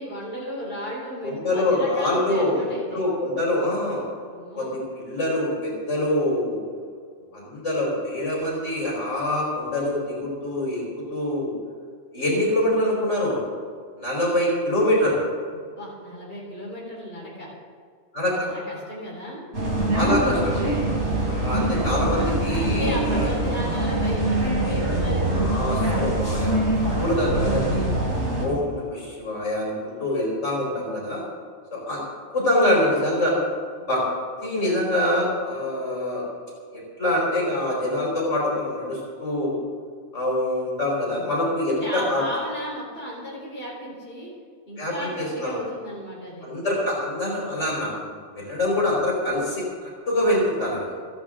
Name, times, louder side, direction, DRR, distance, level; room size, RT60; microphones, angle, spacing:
voice 1, 0.0-3.0 4.3-4.8 15.5-17.5 18.3-19.4 22.5-25.7 41.7-44.3 44.7-46.5, equal, 55° left, -5 dB, 4.3 m, -35 dB
voice 2, 1.2-4.0 4.6-6.6 7.3-11.5 12.1-13.4 14.0-15.2 18.1-18.5 19.8-20.8 21.3-23.3 25.4-27.9 28.4-31.2 31.7-32.0 32.3-33.4 33.9-34.0 34.4-36.2 36.7-39.6 40.1-42.2 44.8-45.6 46.4-50.9, left 1 dB, 90° left, -4 dB, 4.7 m, -25 dB
sound 1, 19.5-28.4, right 1 dB, 70° right, 3.9 m, -24 dB
29.0 x 10.5 x 3.8 m, 2.1 s
omnidirectional pair, 1.2 m